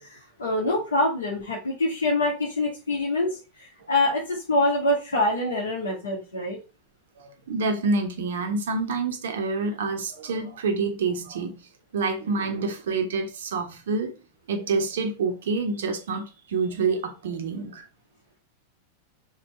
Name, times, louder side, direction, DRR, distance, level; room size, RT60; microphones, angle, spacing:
voice 1, 0.0-6.6, left 2 dB, 70° left, 3.0 m, -25 dB
voice 2, 7.2-14.2 14.5-17.8, right 4 dB, 60° right, 1.4 m, -27 dB
5.8 x 4.3 x 5.1 m
figure-of-eight pair, 90°, 0 cm